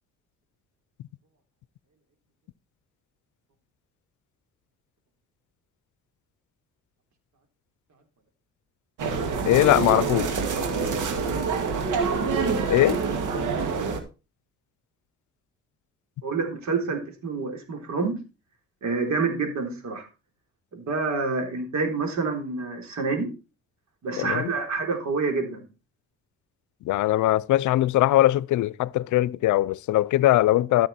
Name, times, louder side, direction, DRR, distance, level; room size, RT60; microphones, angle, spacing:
sound 1, 9.0-14.0, right 5 dB, 90° right, 2.3 m, -26 dB
voice 1, 9.5-10.4 12.7-13.0 24.2-24.5 26.8-30.9, left 15 dB, 75° left, 0.6 m, -21 dB
voice 2, 16.2-18.2 18.8-20.1 20.7-23.3 24.0-25.7, right 4 dB, 65° right, 4.0 m, -27 dB
14.0 x 6.7 x 4.3 m
cardioid pair, 90°, 30 cm